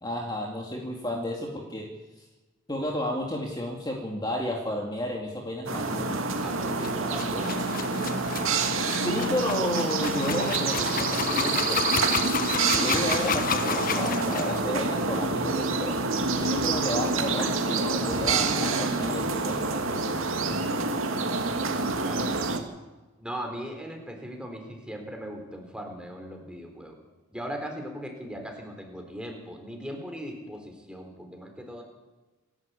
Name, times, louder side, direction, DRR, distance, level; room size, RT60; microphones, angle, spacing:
voice 1, 0.0-1.9 2.7-6.2 8.7-11.9 12.7-16.0 16.4-20.0, left 1 dB, 20° left, 0 dB, 2.4 m, -32 dB
sound 1, 5.7-22.6, right 3 dB, 75° right, 2.3 m, -27 dB
voice 2, 6.3-7.6 21.7-22.5 23.2-27.0 27.3-31.8, equal, 5° right, 3 dB, 4.0 m, -39 dB
sound 2, 6.7-14.6, left 6 dB, 40° left, 1.3 m, -31 dB
28.5 x 12.0 x 8.4 m, 1.2 s
head